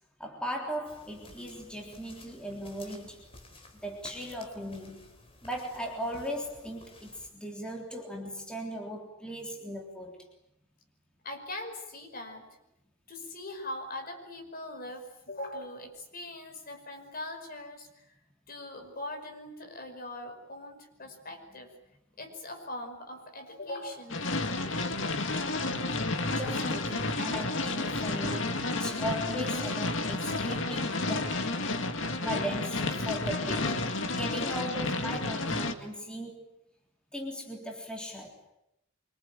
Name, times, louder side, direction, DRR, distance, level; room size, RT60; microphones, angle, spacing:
voice 1, 0.2-3.3 3.8-5.0 5.4-10.2 26.3-31.5 32.2-36.5 37.1-38.4, equal, 5° left, 0 dB, 3.6 m, -38 dB
sound 1, 0.9-7.3, left 2 dB, 30° left, 4.0 m, -54 dB
voice 2, 11.2-12.5 13.1-18.2 18.5-21.7 22.2-24.9, left 1 dB, 45° left, 4 dB, 5.3 m, -41 dB
sound 2, 24.1-35.7, left 2 dB, 65° left, 2.1 m, -31 dB
25.0 x 25.0 x 9.1 m, 0.82 s
head